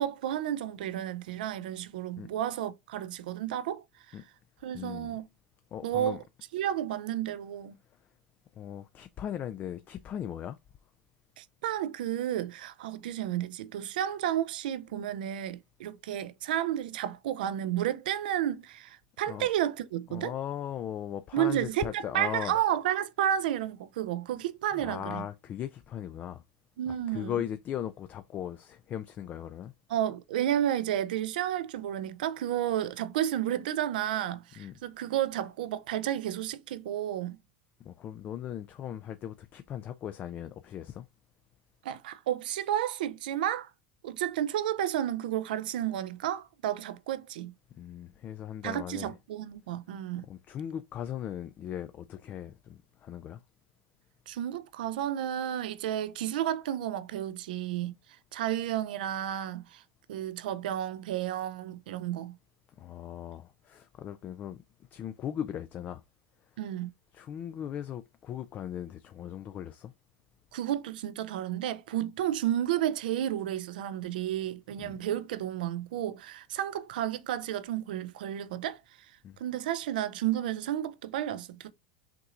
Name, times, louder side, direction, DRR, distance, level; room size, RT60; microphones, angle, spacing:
voice 1, 0.0-3.8 4.6-5.3 5.8-6.2 6.5-7.7 11.4-20.3 21.3-25.2 26.8-27.3 29.9-37.4 41.8-43.7 44.0-47.5 48.6-50.3 54.3-57.9 58.3-59.8 60.1-62.3 66.6-66.9 70.5-78.8 79.4-81.7, right 11 dB, 80° right, 0.4 m, -32 dB
voice 2, 4.7-5.2 5.7-6.2 8.6-10.6 19.3-19.5 20.1-22.5 24.7-26.4 26.9-29.7 34.6-34.7 37.8-41.1 47.7-49.2 50.2-53.4 62.8-64.6 64.9-66.0 67.1-69.9 74.8-75.0 79.2-79.4, left 10 dB, 35° left, 0.3 m, -38 dB
5.8 x 2.9 x 2.4 m
supercardioid pair, 110°, 5 cm